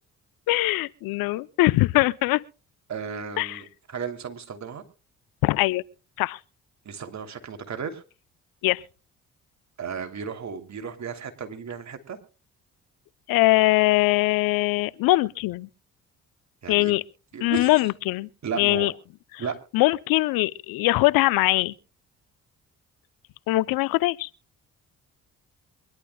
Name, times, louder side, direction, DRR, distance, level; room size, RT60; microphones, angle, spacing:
voice 1, 0.5-2.4 3.4-3.6 5.4-5.8 6.2-6.4 8.6-8.8 13.3-15.7 16.7-17.0 17.4-18.3 18.5-18.9 19.7-21.7 23.5-24.3, left 20 dB, 80° left, 0.7 m, -22 dB
voice 2, 2.9-4.8 6.8-8.0 9.8-12.2 16.6-16.9 17.3-17.7 18.4-18.9 19.4-19.6, right 6 dB, 50° right, 2.9 m, -34 dB
24.0 x 11.5 x 2.3 m
hypercardioid pair, 55°, 35 cm